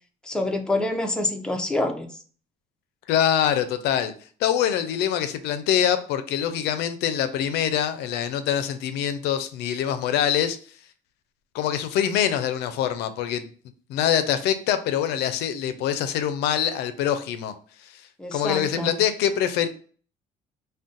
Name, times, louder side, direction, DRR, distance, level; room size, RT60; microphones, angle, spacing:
voice 1, 0.3-2.1 18.2-18.9, left 2 dB, 5° left, 0.5 m, -26 dB
voice 2, 3.1-4.1 4.4-10.6 11.5-13.5 13.9-17.5 17.9-18.0 18.3-19.7, left 9 dB, 85° left, 0.4 m, -24 dB
2.5 x 2.1 x 3.8 m
cardioid pair, 110°, 17 cm